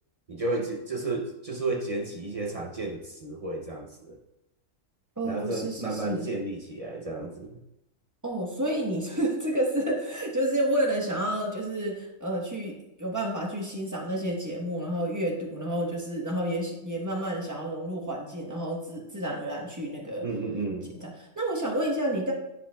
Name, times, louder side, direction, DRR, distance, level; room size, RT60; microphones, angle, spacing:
voice 1, 0.3-4.2 5.2-7.6 20.2-20.9, right 2 dB, 45° right, 1 dB, 0.4 m, -32 dB
voice 2, 5.2-6.3 8.2-20.2 20.9-22.3, right 1 dB, 15° right, -1 dB, 1.0 m, -30 dB
9.9 x 5.1 x 2.3 m, 0.89 s
omnidirectional pair, 1.4 m